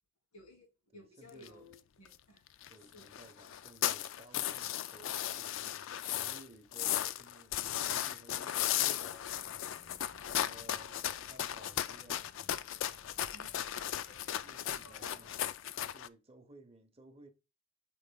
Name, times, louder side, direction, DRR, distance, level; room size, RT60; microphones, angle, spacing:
voice 1, 0.3-2.4 2.9-3.1 13.3-15.4, left 1 dB, 85° left, 2.8 m, -58 dB
voice 2, 0.9-1.8 2.7-9.7 10.3-12.3 14.4-15.3 15.9-17.3, right 1 dB, 25° right, 0.8 m, -57 dB
sound 1, 1.4-1.5 1.7-1.8 2.1-2.2 2.5-2.7 3.0-6.4 6.7-16.1, left 11 dB, 55° left, 0.3 m, -36 dB
sound 2, 9.0-15.6, left 1 dB, 40° left, 1.0 m, -61 dB
8.6 x 5.3 x 2.3 m
head